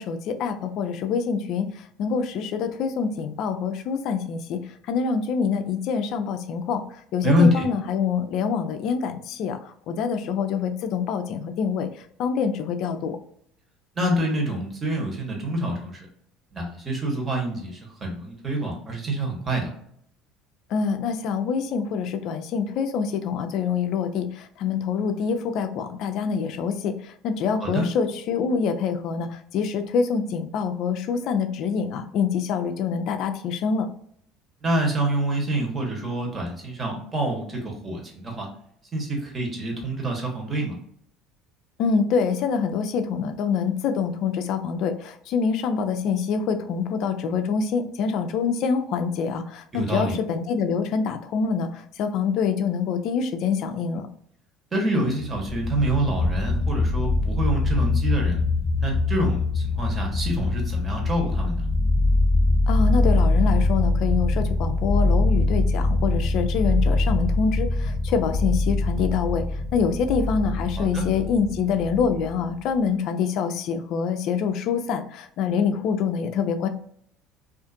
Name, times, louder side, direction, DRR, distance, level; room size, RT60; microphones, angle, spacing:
voice 1, 0.0-1.7 2.0-4.6 4.9-6.8 7.1-9.6 9.9-11.9 12.2-13.2 20.7-33.9 41.8-54.1 62.7-69.4 69.7-76.7, left 6 dB, 60° left, 8 dB, 0.3 m, -25 dB
voice 2, 7.2-7.7 13.9-16.0 16.5-19.7 27.6-27.9 34.6-38.5 38.9-40.7 49.7-50.1 54.7-58.4 58.8-61.6 70.8-71.0, right 1 dB, 30° right, 0 dB, 1.1 m, -26 dB
sound 1, 55.2-72.5, left 2 dB, 5° left, 0.7 m, -23 dB
2.5 x 2.4 x 2.5 m, 0.67 s
hypercardioid pair, 70°, 0 cm